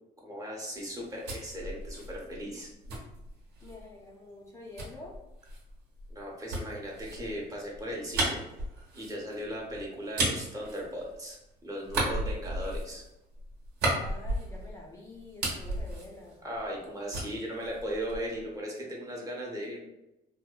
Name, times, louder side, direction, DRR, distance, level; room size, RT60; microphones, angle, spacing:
voice 1, 0.2-2.7 6.1-8.4 8.9-11.4 11.6-13.0 16.4-19.8, equal, 20° right, -2 dB, 0.7 m, -37 dB
sound 1, 0.9-3.9 4.8-11.4 11.8-14.9 15.2-16.9 17.1-18.4, right 2 dB, 85° right, 0.9 m, -35 dB
voice 2, 3.6-5.2 14.0-16.4, left 2 dB, 15° left, -3 dB, 0.4 m, -47 dB
2.7 x 2.0 x 2.2 m, 0.91 s
cardioid pair, 110°, 17 cm